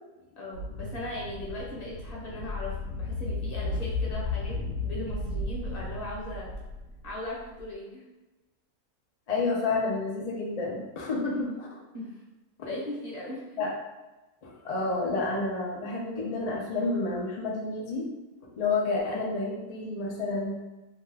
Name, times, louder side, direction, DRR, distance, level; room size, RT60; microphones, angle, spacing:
voice 1, 0.4-6.5 7.0-8.0 11.4-11.6 11.9-12.2 12.7-13.6, left 1 dB, 30° left, -5 dB, 0.8 m, -38 dB
sound 1, 0.5-7.6, left 3 dB, 65° left, 1.0 m, -34 dB
voice 2, 9.3-11.7 13.6-13.7 14.4-18.1 18.6-20.6, left 3 dB, 90° left, -3 dB, 0.3 m, -30 dB
2.9 x 2.3 x 3.3 m, 1.1 s
omnidirectional pair, 1.6 m